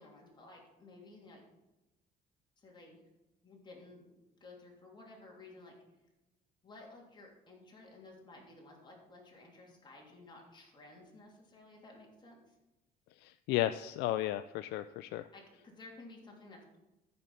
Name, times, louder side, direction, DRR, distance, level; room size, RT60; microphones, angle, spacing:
voice 1, 0.0-1.4 2.6-3.0 3.4-5.7 6.6-12.4 15.3-16.8, left 2 dB, 25° left, -1 dB, 3.2 m, -55 dB
voice 2, 13.2-15.3, left 14 dB, 90° left, 12 dB, 0.4 m, -34 dB
13.5 x 5.4 x 5.7 m, 1.0 s
cardioid pair, 110°, 17 cm